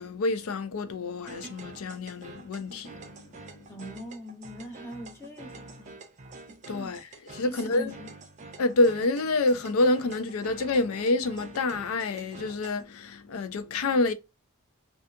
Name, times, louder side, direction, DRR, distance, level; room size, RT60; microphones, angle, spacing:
voice 1, 0.0-3.7 6.7-7.9 8.6-14.1, left 2 dB, 90° left, 0.4 m, -28 dB
sound 1, 1.2-12.8, right 3 dB, 35° right, 0.5 m, -47 dB
voice 2, 3.7-6.0 6.7-7.0 7.4-8.1, equal, 10° left, 0.8 m, -41 dB
2.6 x 2.3 x 2.4 m
head